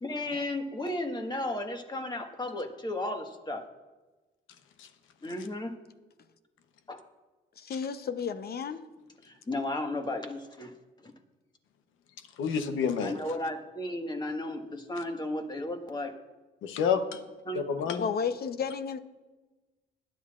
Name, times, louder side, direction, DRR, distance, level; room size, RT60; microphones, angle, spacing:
voice 1, 0.0-3.6 5.2-5.7 6.9-7.0 9.2-10.7 11.0-11.1 13.0-16.1 17.4-17.6, left 1 dB, 20° left, 4 dB, 1.6 m, -34 dB
voice 2, 7.6-8.8 18.0-19.0, left 6 dB, 50° left, 11 dB, 0.8 m, -32 dB
voice 3, 12.4-13.1 16.6-17.2 17.5-18.1, left 6 dB, 90° left, 9 dB, 0.9 m, -29 dB
20.5 x 10.5 x 2.5 m, 1.2 s
cardioid pair, 90°, 20 cm